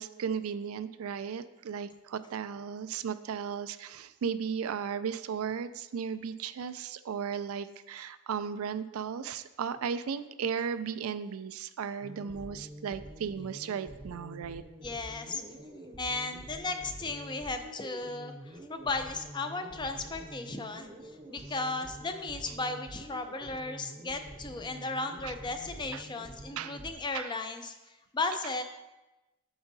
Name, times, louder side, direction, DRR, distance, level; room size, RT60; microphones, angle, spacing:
voice 1, 0.0-14.6 25.2-25.3 25.9-26.0 26.6-26.8 27.1-27.3, right 7 dB, 80° right, 12 dB, 0.4 m, -35 dB
sound 1, 12.0-26.9, right 1 dB, 30° right, 0.7 m, -47 dB
voice 2, 14.8-15.4 16.0-20.9 21.3-27.8 28.1-28.6, left 3 dB, 20° left, 7 dB, 0.5 m, -35 dB
8.7 x 6.9 x 2.7 m, 1.0 s
head